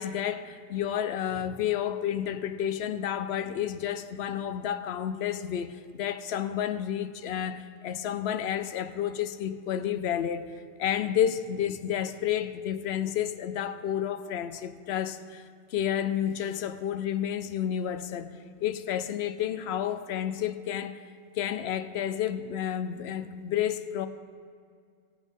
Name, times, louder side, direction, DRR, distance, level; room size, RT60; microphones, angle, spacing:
voice 1, 0.0-10.5 10.8-15.4 15.7-18.3 18.6-21.0 21.4-24.1, left 10 dB, 85° left, 11 dB, 0.9 m, -30 dB
18.0 x 8.0 x 3.6 m, 2.2 s
omnidirectional pair, 1.0 m